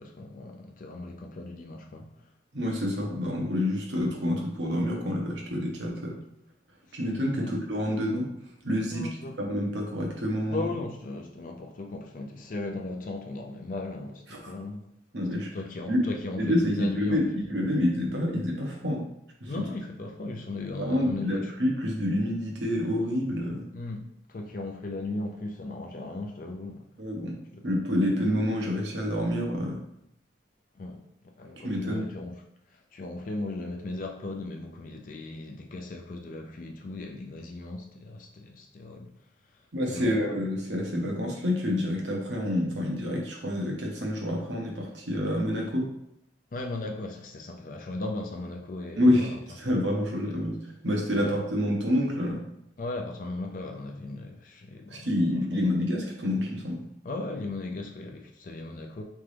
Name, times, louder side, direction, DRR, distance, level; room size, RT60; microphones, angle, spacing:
voice 1, 0.0-2.1 6.9-7.0 7.4-7.6 8.9-9.4 10.5-14.9 15.3-17.4 19.4-21.5 23.7-26.9 27.5-27.6 30.7-31.0 31.4-39.2 39.5-39.6 39.9-40.4 46.5-49.4 50.0-50.5 51.1-51.3 52.8-55.1 55.5-55.7 57.0-59.0, left 2 dB, 50° left, 0.4 m, -37 dB
voice 2, 2.5-6.2 6.9-8.3 8.6-9.1 9.4-10.6 14.3-14.5 15.1-15.5 15.9-16.0 16.4-19.1 19.4-19.7 20.8-23.6 27.0-27.3 27.6-29.8 31.6-32.1 39.7-45.9 49.0-50.6 50.8-52.4 54.9-56.8, left 1 dB, 85° right, 1.1 m, -28 dB
3.8 x 3.5 x 3.3 m
head